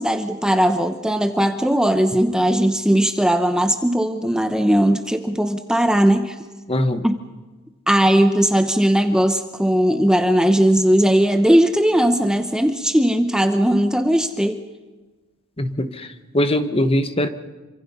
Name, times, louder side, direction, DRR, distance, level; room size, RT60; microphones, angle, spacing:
voice 1, 0.0-6.4 7.0-7.2 7.9-14.6, equal, 5° right, 8 dB, 0.9 m, -18 dB
voice 2, 6.7-7.1 15.6-16.1 16.3-17.3, left 1 dB, 25° left, 10 dB, 1.2 m, -21 dB
27.5 x 25.5 x 5.6 m, 1.2 s
head